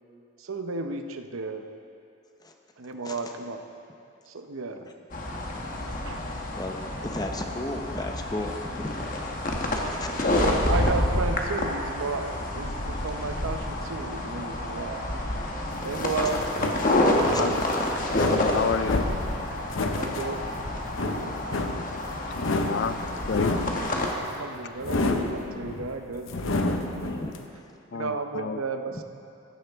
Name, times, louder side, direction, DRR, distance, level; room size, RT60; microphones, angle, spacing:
voice 1, 0.4-1.7 2.8-3.6 4.3-4.9 5.9-6.2 10.1-15.0 15.8-16.5 17.1-17.6 19.9-20.4 21.1-21.4 24.3-26.6 27.9-29.0, right 3 dB, 85° right, 7 dB, 0.7 m, -33 dB
sound 1, 5.1-24.1, left 1 dB, 40° left, 1.1 m, -28 dB
voice 2, 7.0-9.0 9.7-10.4 17.1-17.4 27.2-27.3, left 1 dB, 20° left, 3 dB, 0.7 m, -35 dB
sound 2, 7.2-17.6, right 2 dB, 60° right, 3.2 m, -48 dB
sound 3, 15.7-27.4, left 2 dB, 75° left, 0.8 m, -30 dB
voice 3, 18.2-19.1 22.6-23.0 23.2-23.5 27.9-28.6, left 5 dB, 55° left, 12 dB, 0.4 m, -29 dB
15.0 x 12.0 x 3.5 m, 2.6 s
head